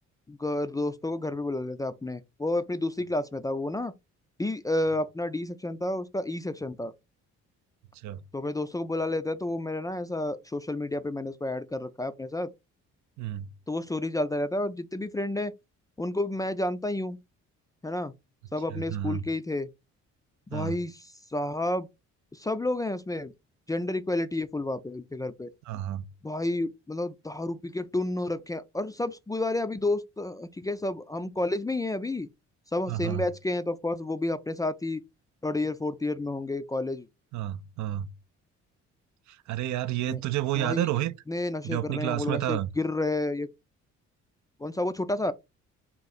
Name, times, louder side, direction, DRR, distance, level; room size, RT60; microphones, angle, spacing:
voice 1, 0.3-3.9 4.4-6.9 8.3-12.5 13.7-15.5 16.0-17.2 17.8-18.1 18.5-19.7 20.5-21.9 22.3-23.3 23.7-25.5 26.2-32.3 32.7-35.0 35.4-37.1 40.1-40.2 40.6-40.9 41.3-43.5 44.6-45.3, left 2 dB, 10° left, 0.3 m, -30 dB
voice 2, 13.2-13.5 18.7-19.2 20.5-20.8 25.7-26.1 32.9-33.3 37.3-38.1 39.3-41.1 41.6-42.7, right 13 dB, 70° right, 0.4 m, -30 dB
3.8 x 2.4 x 4.1 m
cardioid pair, 90°, 30 cm